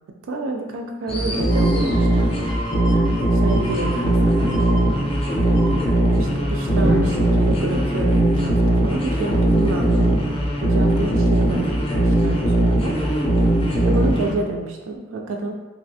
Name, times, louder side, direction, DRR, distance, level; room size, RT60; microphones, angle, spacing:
voice 1, 0.2-2.3 3.3-4.6 6.2-10.2 10.6-12.9 13.8-15.5, right 2 dB, 75° right, 1 dB, 0.3 m, -28 dB
sound 1, 1.1-14.3, right 1 dB, 30° left, 0.5 m, -19 dB
sound 2, 1.5-7.0 7.4-7.5, right 2 dB, 90° left, 1.0 m, -35 dB
Drum, 6.8-9.0, equal, 20° right, 0.5 m, -30 dB
3.1 x 2.6 x 2.6 m, 1.2 s
head